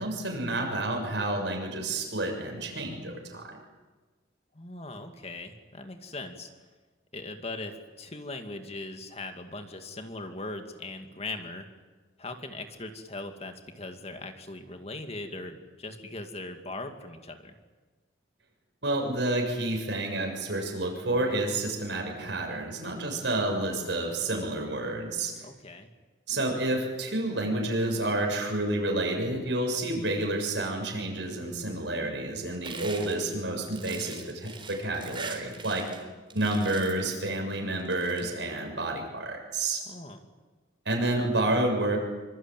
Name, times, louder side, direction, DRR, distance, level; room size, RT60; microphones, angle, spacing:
voice 1, 0.0-3.6 18.8-25.4 26.3-35.9 36.3-39.8 40.9-42.0, right 2 dB, 75° right, 2 dB, 7.0 m, -29 dB
voice 2, 4.5-6.5 7.1-11.7 12.2-17.5 25.4-25.9 39.8-40.2, left 2 dB, 35° left, 6 dB, 2.3 m, -40 dB
sound 1, 32.6-36.0 36.3-37.1 37.8-38.2, right 5 dB, 30° right, 4.0 m, -42 dB
26.0 x 24.5 x 9.2 m, 1.3 s
head